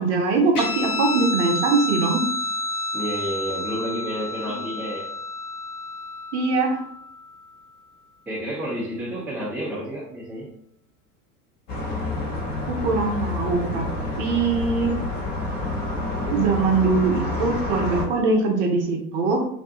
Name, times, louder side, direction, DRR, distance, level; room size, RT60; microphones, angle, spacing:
voice 1, 0.0-2.2 6.3-6.8 12.7-13.9 14.2-14.9 16.2-19.5, right 4 dB, 50° right, 2 dB, 0.7 m, -22 dB
Guitar, 0.6-7.5, left 2 dB, 80° left, 0.7 m, -30 dB
voice 2, 2.9-5.1 8.3-10.5, equal, 5° right, -8 dB, 0.7 m, -30 dB
sound 1, 11.7-18.0, left 2 dB, 45° left, 1.0 m, -28 dB
2.6 x 2.2 x 2.8 m, 0.69 s
figure-of-eight pair, 80°, 45 cm